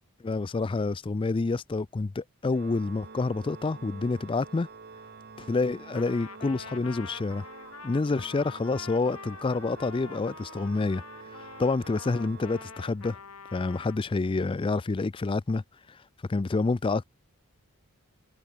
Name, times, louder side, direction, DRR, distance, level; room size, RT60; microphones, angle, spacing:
voice 1, 0.2-4.7 5.4-7.5 7.8-11.0 11.6-13.2 13.5-15.6 16.3-17.0, left 3 dB, 25° left, 0.3 m, -28 dB
Organ, 2.5-13.4, right 5 dB, 45° right, 1.0 m, -48 dB
Trumpet, 5.9-14.0, left 5 dB, 80° left, 1.9 m, -46 dB
head